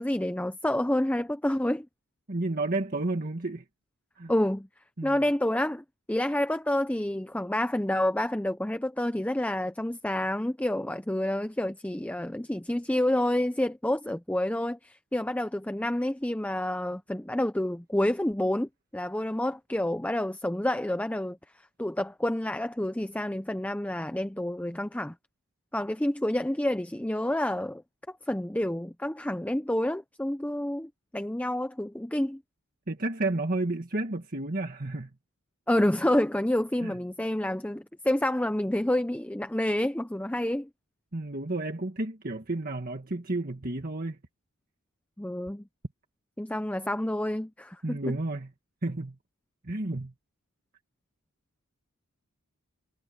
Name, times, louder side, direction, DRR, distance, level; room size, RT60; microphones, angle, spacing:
voice 1, 0.0-1.9 4.3-4.7 5.0-21.4 21.8-25.1 25.7-27.8 28.3-32.4 35.7-40.7 45.2-45.6 46.4-48.2, left 1 dB, 5° left, 0.6 m, -28 dB
voice 2, 2.3-3.6 4.2-4.3 5.0-5.2 32.9-35.1 36.8-36.9 41.1-44.2 47.8-48.5 48.8-49.2 49.6-50.1, right 2 dB, 40° right, 1.7 m, -31 dB
head